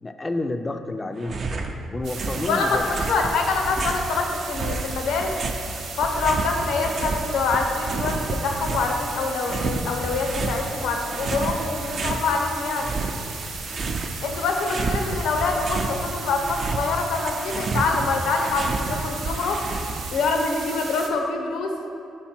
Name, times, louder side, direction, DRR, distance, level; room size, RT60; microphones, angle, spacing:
voice 1, 0.0-1.6 1.9-2.9, left 2 dB, 20° left, 7 dB, 0.3 m, -30 dB
sound 1, 1.2-1.7 2.0-4.1 4.5-7.2 7.5-9.0 9.4-10.6 11.1-12.2 12.6-14.2 14.5-16.0 16.3-20.2, right 3 dB, 50° right, 0.4 m, -30 dB
sound 2, 2.0-21.1, right 4 dB, 80° right, 0.7 m, -36 dB
voice 2, 2.5-2.8 3.1-5.3 6.0-12.9 14.2-19.6 20.1-21.7, left 3 dB, 80° left, 3 dB, 0.6 m, -25 dB
5.2 x 4.5 x 4.3 m, 2.5 s
cardioid pair, 90°, 0 cm